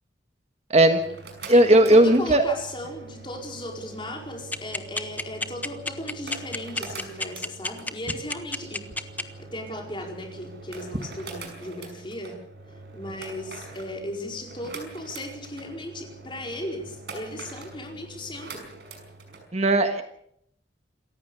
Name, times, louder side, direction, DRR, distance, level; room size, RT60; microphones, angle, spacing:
voice 1, 0.7-1.0 1.5-2.4 19.5-20.0, right 1 dB, 35° right, 7 dB, 1.5 m, -17 dB
sound 1, 0.9-19.4, right 3 dB, 60° right, 5.7 m, -43 dB
voice 2, 1.5-8.8 9.1-12.4 12.9-18.7, left 1 dB, 25° left, 2 dB, 4.7 m, -36 dB
sound 2, 4.5-9.2, left 2 dB, 10° left, 1.0 m, -28 dB
27.5 x 15.0 x 7.0 m, 0.71 s
head